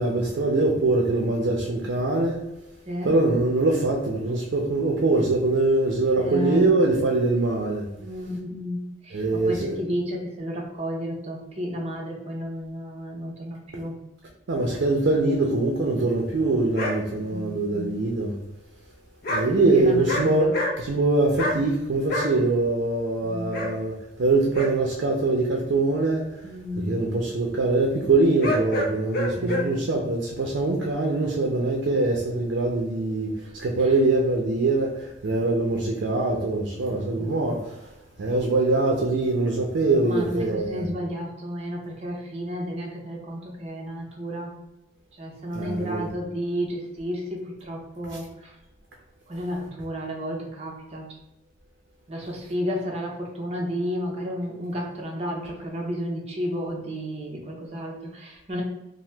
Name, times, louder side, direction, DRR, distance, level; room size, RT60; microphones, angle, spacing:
voice 1, 0.0-2.4 3.0-7.9 9.1-9.8 14.5-18.3 19.3-26.4 26.8-37.9 38.2-40.9 45.5-46.1 48.1-48.2, right 2 dB, 80° right, 0 dB, 0.5 m, -23 dB
voice 2, 6.2-6.7 8.0-13.9 17.1-18.0 19.5-20.5 23.2-23.7 26.4-27.0 29.4-29.8 35.3-35.5 37.2-37.3 40.0-44.5 45.2-48.5 49.3-51.1 52.1-58.6, equal, 35° right, -1 dB, 0.6 m, -32 dB
sound 1, 16.7-17.0 19.2-19.4 19.9-20.3 20.5-21.0 21.4-21.6 22.1-22.3 23.5-23.7 24.5-24.7 28.4-29.7, left 1 dB, 55° left, 0.5 m, -26 dB
2.9 x 2.0 x 3.2 m, 0.91 s
head